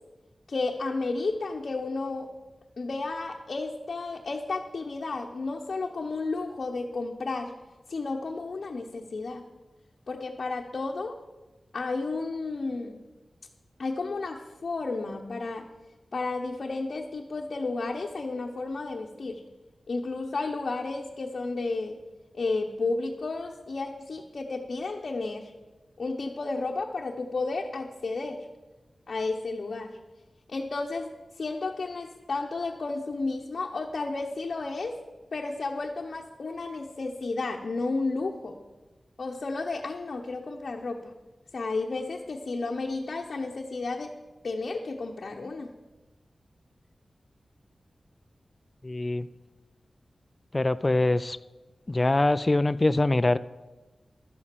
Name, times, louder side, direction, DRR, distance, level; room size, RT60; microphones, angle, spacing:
voice 1, 0.5-2.3 2.8-7.5 7.9-9.4 10.1-11.2 11.7-13.0 13.8-15.7 16.1-19.4 19.9-22.0 22.3-25.5 26.0-28.5 29.1-29.9 30.5-31.1 31.4-35.0 35.3-38.6 39.2-41.1 41.5-44.1 44.4-45.7, left 3 dB, 60° left, 0 dB, 0.9 m, -32 dB
voice 2, 48.8-49.3 50.5-51.4 51.9-53.4, left 2 dB, 25° left, 13 dB, 0.3 m, -23 dB
12.0 x 8.4 x 6.8 m, 1.2 s
wide cardioid pair, 120°, 0 cm